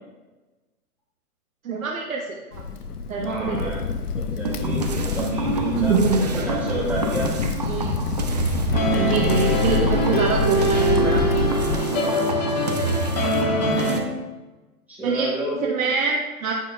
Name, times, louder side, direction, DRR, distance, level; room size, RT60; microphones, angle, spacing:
voice 1, 1.6-2.6 3.1-3.7 5.7-6.4 7.7-7.9 8.9-11.2 15.0-15.3 15.5-16.6, right 4 dB, 65° right, 0 dB, 0.9 m, -25 dB
Crackle, 2.5-11.8, left 5 dB, 85° left, 0.7 m, -27 dB
voice 2, 3.2-3.8 4.1-7.3 11.7-12.3 14.9-15.6, equal, 5° right, -7 dB, 1.7 m, -30 dB
sound 1, 4.4-14.0, right 3 dB, 30° right, 0.4 m, -29 dB
sound 2, 8.7-14.0, equal, 30° left, 1.4 m, -23 dB
9.0 x 5.7 x 2.4 m, 1.2 s
hypercardioid pair, 135°, 45 cm